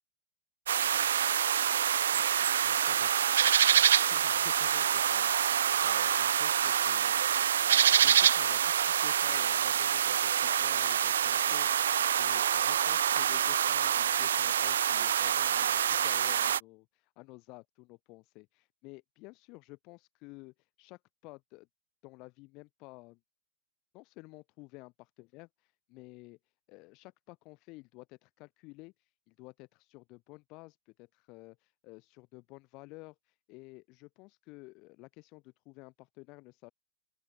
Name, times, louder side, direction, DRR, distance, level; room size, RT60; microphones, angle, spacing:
sound 1, 0.7-16.6, right 9 dB, 75° right, 0.5 m, -26 dB
voice 1, 2.6-3.3 3.6-11.9 12.2-21.7 22.0-23.2 23.9-26.4 26.7-36.7, left 25 dB, 45° left, 6.2 m, -52 dB
open air
hypercardioid pair, 115°, 0 cm